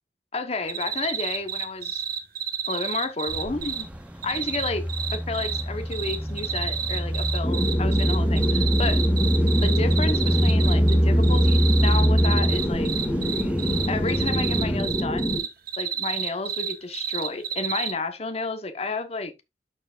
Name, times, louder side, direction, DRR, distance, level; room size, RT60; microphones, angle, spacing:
voice 1, 0.3-2.0 2.7-3.9 4.2-4.8 5.1-9.0 9.6-12.9 13.9-15.5 15.8-19.3, left 3 dB, 35° left, 1.0 m, -31 dB
sound 1, 0.7-3.8 4.2-5.6 5.9-10.9 11.2-17.9, right 8 dB, 55° right, 1.2 m, -30 dB
sound 2, 3.3-14.8, equal, 5° right, 0.7 m, -24 dB
sound 3, 7.4-15.4, equal, 15° left, 1.9 m, -27 dB
12.0 x 4.6 x 2.4 m
head